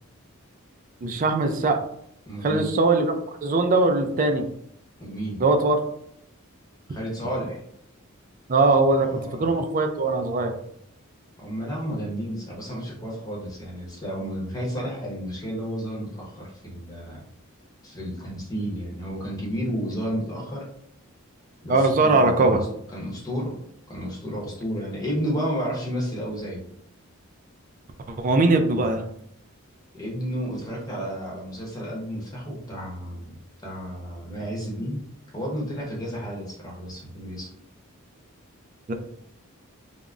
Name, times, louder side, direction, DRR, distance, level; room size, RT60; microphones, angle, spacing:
voice 1, 1.0-1.8 2.4-3.1 3.4-4.5 5.4-5.8 8.5-10.5 21.7-22.6 28.1-29.1 38.9-39.0, right 3 dB, 35° right, 6 dB, 0.3 m, -21 dB
voice 2, 2.3-2.7 5.0-5.4 6.9-7.6 9.0-9.5 11.4-17.2 17.8-20.7 21.6-22.7 22.9-23.5 23.9-26.6 29.9-33.4 33.6-35.0 35.3-37.5, equal, 15° left, -4 dB, 0.8 m, -32 dB
3.4 x 2.0 x 2.4 m, 0.69 s
head